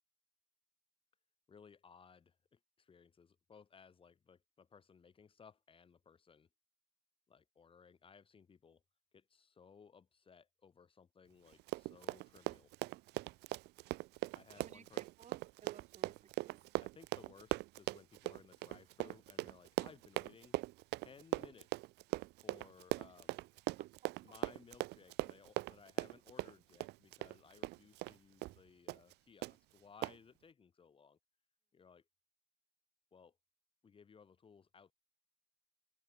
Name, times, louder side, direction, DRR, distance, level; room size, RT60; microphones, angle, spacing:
voice 1, 1.5-6.5 7.3-8.8 9.1-12.7 14.3-15.0 16.8-20.6 20.9-21.9 22.4-23.4 24.2-31.2 31.7-32.0 33.1-33.4 33.8-34.9, left 6 dB, 30° left, 1.7 m, -61 dB
Run, 11.5-28.2 28.4-28.6 28.9-29.1 29.4-29.5 30.0-30.2, right 20 dB, 80° right, 0.5 m, -40 dB
voice 2, 14.5-16.6 23.1-23.2 23.8-23.9, right 8 dB, 45° right, 3.0 m, -60 dB
open air
cardioid pair, 110°, 17 cm